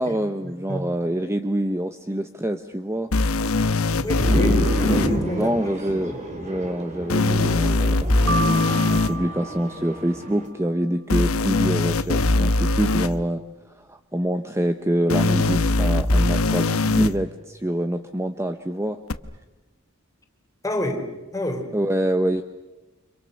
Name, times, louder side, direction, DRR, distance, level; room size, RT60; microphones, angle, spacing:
voice 1, 0.0-3.1 5.3-13.4 13.7-19.0 21.7-22.4, right 1 dB, 15° right, 0.9 m, -26 dB
sound 1, 3.1-5.1 7.1-9.1 11.1-13.1 15.1-17.1 19.1-19.2, left 2 dB, 85° left, 1.1 m, -21 dB
voice 2, 3.9-5.5 6.1-6.2 20.6-21.7, left 1 dB, 15° left, 3.6 m, -29 dB
sound 2, 4.2-10.5, equal, 35° right, 4.1 m, -29 dB
Piano, 8.3-10.4, right 2 dB, 80° right, 3.8 m, -31 dB
30.0 x 26.5 x 6.5 m
head